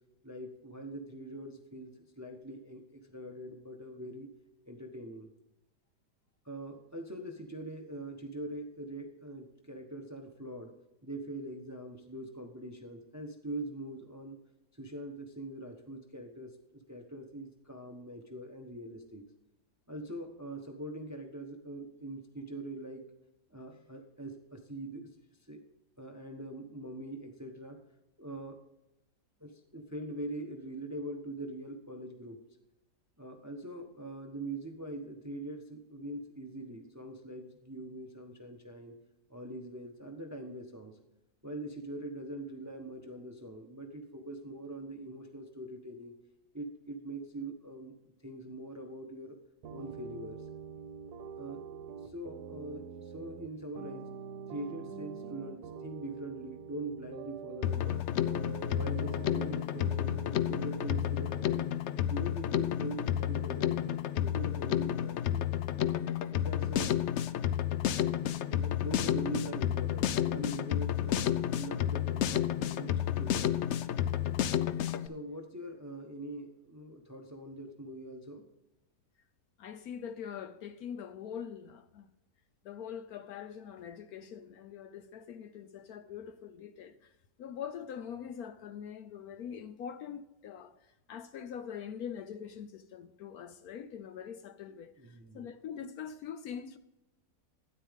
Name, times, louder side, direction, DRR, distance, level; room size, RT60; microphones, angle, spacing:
voice 1, 0.2-4.3 4.7-5.3 6.4-10.7 11.0-14.4 14.7-19.2 19.9-23.0 23.5-25.1 25.5-25.6 26.0-27.8 28.2-28.6 29.4-32.4 33.2-38.9 39.3-41.0 41.4-46.1 46.5-47.9 48.2-49.4 49.7-50.5 51.4-54.1 54.5-58.1 58.7-61.7 62.1-65.5 66.2-67.0 68.5-73.5 75.0-78.5 95.0-95.5, right 1 dB, 15° right, 0.7 m, -43 dB
sound 1, 49.6-61.4, right 6 dB, 70° right, 1.3 m, -45 dB
Drum kit, 57.6-75.1, left 11 dB, 85° left, 0.6 m, -31 dB
voice 2, 79.6-82.1 82.6-87.1 87.4-90.8 91.1-96.8, left 8 dB, 70° left, 1.0 m, -43 dB
12.5 x 10.0 x 3.6 m
omnidirectional pair, 1.8 m